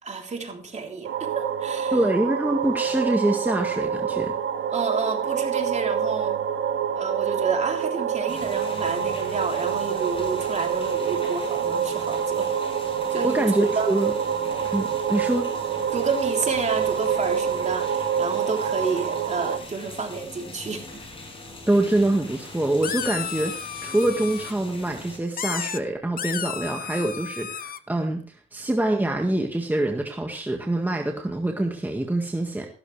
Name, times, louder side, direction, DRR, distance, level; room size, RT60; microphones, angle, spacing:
voice 1, 0.0-2.0 4.7-6.4 6.9-12.5 13.1-13.9 15.9-21.0, right 4 dB, 35° right, 2 dB, 3.5 m, -30 dB
sound 1, 1.0-19.6, right 8 dB, 75° right, 1.6 m, -27 dB
voice 2, 1.9-4.3 13.2-14.1 14.7-15.4 21.7-28.2 28.5-32.7, right 1 dB, 10° right, 2 dB, 1.8 m, -25 dB
sound 2, 8.3-25.2, left 2 dB, 25° left, 6.5 m, -42 dB
sound 3, 22.8-24.5 25.4-25.8 26.2-27.8, left 8 dB, 45° left, 0.9 m, -32 dB
14.0 x 13.0 x 3.3 m, 0.42 s
cardioid pair, 90°, 20 cm